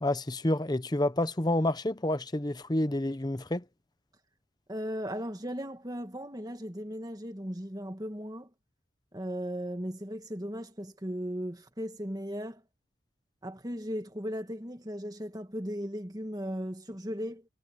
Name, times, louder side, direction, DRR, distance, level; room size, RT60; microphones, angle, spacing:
voice 1, 0.0-3.6, left 1 dB, 20° left, 0.8 m, -29 dB
voice 2, 4.7-8.5 9.1-12.6 13.4-17.4, equal, 20° right, 1.8 m, -37 dB
head